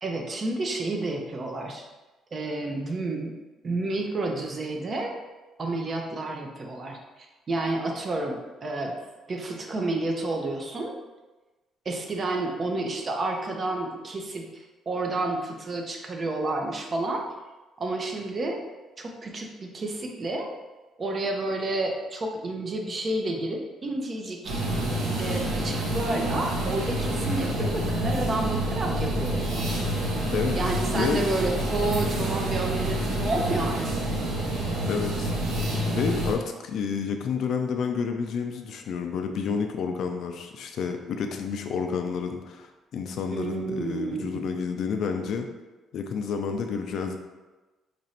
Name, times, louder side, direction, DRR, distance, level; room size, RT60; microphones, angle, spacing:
voice 1, 0.0-1.9 2.3-3.3 3.6-5.1 5.6-7.0 7.5-9.0 9.3-11.0 11.9-17.2 17.8-18.6 19.0-20.5 21.0-24.6 25.2-29.7 30.6-34.1 43.3-44.5, right 2 dB, 35° right, 2 dB, 0.6 m, -30 dB
sound 1, 24.4-36.3, right 1 dB, 80° right, 0.9 m, -28 dB
voice 2, 30.3-31.2 34.9-35.3 35.9-45.5 45.9-47.2, left 6 dB, 65° left, 5 dB, 0.4 m, -30 dB
3.0 x 2.5 x 4.2 m, 1.2 s
cardioid pair, 115°, 0 cm